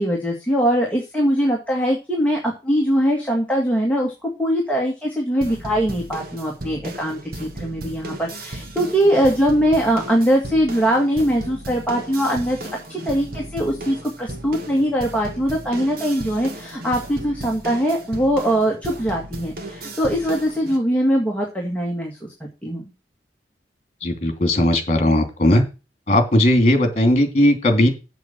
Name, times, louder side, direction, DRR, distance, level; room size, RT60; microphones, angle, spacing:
voice 1, 0.0-22.8, equal, 10° left, -1 dB, 2.0 m, -21 dB
sound 1, 5.4-20.8, right 1 dB, 55° right, 1.6 m, -35 dB
voice 2, 24.0-25.6 26.1-27.9, left 1 dB, 40° left, 6 dB, 2.8 m, -17 dB
7.8 x 7.7 x 6.1 m, 0.30 s
head